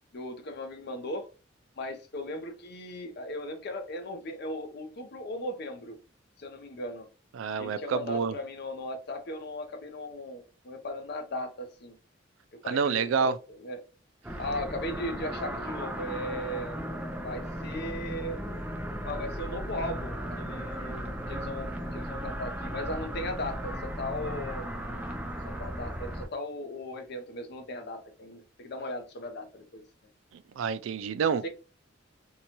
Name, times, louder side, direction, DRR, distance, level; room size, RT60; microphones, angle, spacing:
voice 1, 0.1-1.3 1.8-6.0 6.4-7.1 7.6-12.0 12.5-13.8 14.4-16.8 17.2-18.4 19.0-24.7 25.4-29.8 31.4-31.5, left 1 dB, 55° left, 0.6 m, -37 dB
voice 2, 7.3-8.3 12.6-13.4 30.3-31.5, right 6 dB, 85° right, 0.3 m, -28 dB
sound 1, 14.2-26.3, equal, 5° right, 0.4 m, -36 dB
2.7 x 2.2 x 2.9 m
head